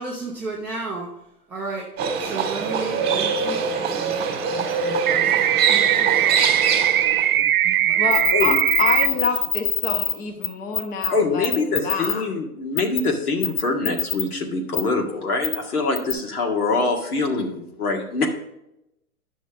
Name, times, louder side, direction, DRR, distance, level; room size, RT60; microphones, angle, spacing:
voice 1, 0.0-1.1 1.5-8.6 9.1-9.2, right 3 dB, 5° right, -9 dB, 0.4 m, -35 dB
Livestock farm animals working animals, 2.0-7.3, right 5 dB, 20° right, 1.7 m, -24 dB
sound 1, 5.1-9.1, right 12 dB, 70° right, 0.5 m, -20 dB
voice 2, 8.0-12.2, left 5 dB, 20° left, 5 dB, 0.9 m, -27 dB
sound 2, 8.1-10.1 10.4-10.5 10.7-11.1 11.4-12.1 12.8-13.0 13.4-14.2 14.7-14.8 15.4-15.6 16.0-16.1, left 8 dB, 55° left, 1.3 m, -23 dB
voice 3, 11.1-18.3, left 3 dB, 75° left, 1 dB, 2.0 m, -24 dB
9.9 x 6.2 x 3.5 m, 0.84 s
hypercardioid pair, 125°, 45 cm